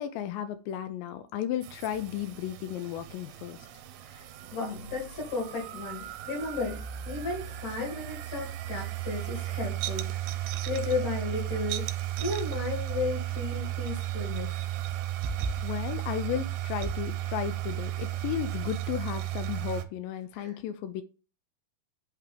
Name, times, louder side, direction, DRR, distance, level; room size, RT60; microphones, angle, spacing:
voice 1, 0.0-3.7 15.6-21.0, left 10 dB, 80° left, 2.1 m, -34 dB
sound 1, 1.6-19.8, right 13 dB, 80° right, 2.4 m, -34 dB
voice 2, 4.5-14.6 20.4-20.5, left 3 dB, 55° left, 3.6 m, -34 dB
8.2 x 3.4 x 5.0 m
omnidirectional pair, 4.5 m